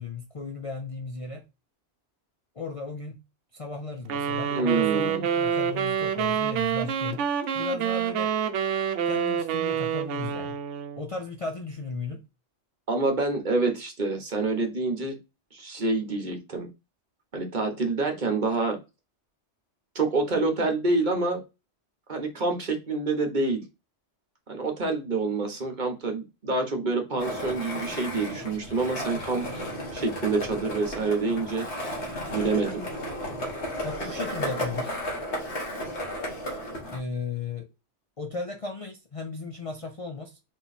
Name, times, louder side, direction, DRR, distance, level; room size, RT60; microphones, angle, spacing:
voice 1, 0.0-1.5 2.6-3.2 3.5-7.2 7.5-8.3 9.0-10.6 11.0-12.2 33.8-35.0 36.9-37.7 38.2-40.4, left 4 dB, 40° left, 0.5 m, -35 dB
sound 1, 4.1-11.0, right 8 dB, 85° right, 0.9 m, -27 dB
voice 2, 4.5-5.3 12.9-15.2 15.5-16.7 17.3-18.8 19.9-21.4 22.1-23.7 24.5-29.5 29.9-31.9 32.3-32.8, right 3 dB, 45° right, 1.1 m, -27 dB
Skateboard, 27.2-37.0, equal, 70° left, 1.9 m, -33 dB
4.0 x 3.1 x 4.0 m
omnidirectional pair, 1.2 m